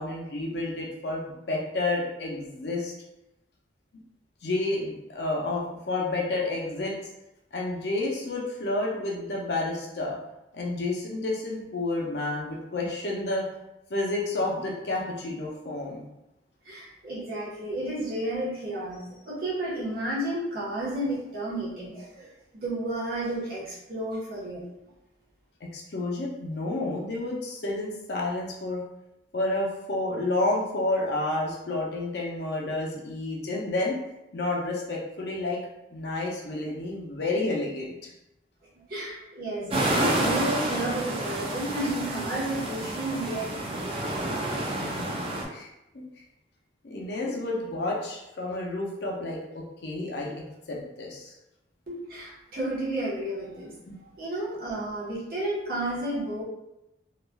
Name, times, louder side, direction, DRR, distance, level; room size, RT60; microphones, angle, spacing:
voice 1, 0.0-2.9 4.4-7.0 7.5-10.2 10.5-13.5 13.9-16.0 25.7-28.8 29.3-34.0 34.3-35.6 35.9-38.1 44.8-45.2 45.5-45.7 45.9-46.0 46.8-50.3 50.7-51.3 53.9-54.0, left 2 dB, 60° left, -2 dB, 0.5 m, -30 dB
voice 2, 16.6-22.3 22.5-24.6 38.9-44.0 51.9-53.7 54.2-56.4, right 1 dB, 50° right, -8 dB, 1.0 m, -32 dB
sound 1, 39.7-45.4, right 1 dB, 30° right, 0.4 m, -29 dB
3.1 x 2.4 x 2.2 m, 0.91 s
head